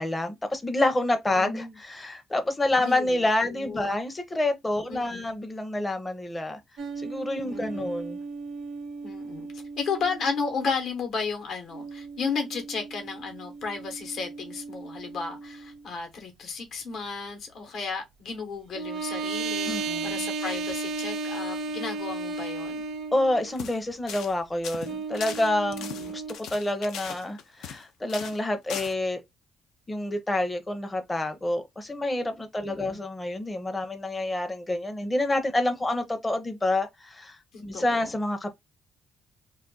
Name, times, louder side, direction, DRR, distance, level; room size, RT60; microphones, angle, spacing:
voice 1, 0.0-6.6 7.0-8.2 19.7-20.3 23.1-29.2 29.9-38.5, left 1 dB, 20° left, 0.6 m, -28 dB
voice 2, 1.4-1.7 2.8-3.2 3.5-4.0 4.9-5.3 7.5-7.9 9.0-9.5 9.8-22.8 25.9-26.1 32.6-33.0 37.5-38.1, left 5 dB, 70° left, 0.9 m, -34 dB
sound 1, 6.8-10.7 11.7-15.8 18.7-23.6 24.8-26.4, right 3 dB, 75° right, 0.6 m, -35 dB
sound 2, 23.5-23.8 24.1-24.3 24.6-27.8 28.1-28.4 28.7-28.9, left 8 dB, 85° left, 0.4 m, -38 dB
2.4 x 2.3 x 3.7 m
cardioid pair, 90°, 0 cm